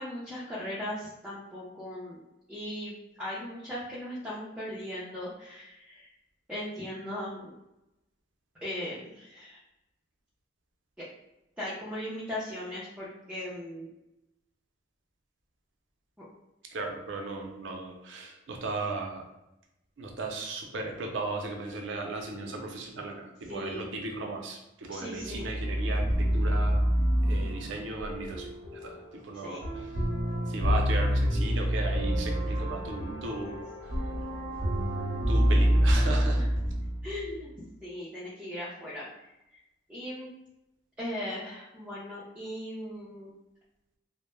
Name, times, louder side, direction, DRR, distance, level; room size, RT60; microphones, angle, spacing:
voice 1, 0.0-2.2 2.5-6.1 6.5-7.5 8.6-9.6 11.6-13.9 23.5-23.9 24.9-25.5 29.3-29.6 36.3-36.4 37.0-37.5 37.8-39.1 39.9-40.3 41.0-43.3, left 1 dB, 5° right, -9 dB, 0.5 m, -38 dB
voice 2, 16.7-19.2 20.0-26.8 27.3-28.5 28.8-29.9 30.5-33.9 35.3-36.4, right 3 dB, 75° right, 2 dB, 0.5 m, -36 dB
sound 1, 25.2-37.3, equal, 85° left, 1.0 m, -27 dB
2.1 x 2.0 x 3.0 m, 0.90 s
head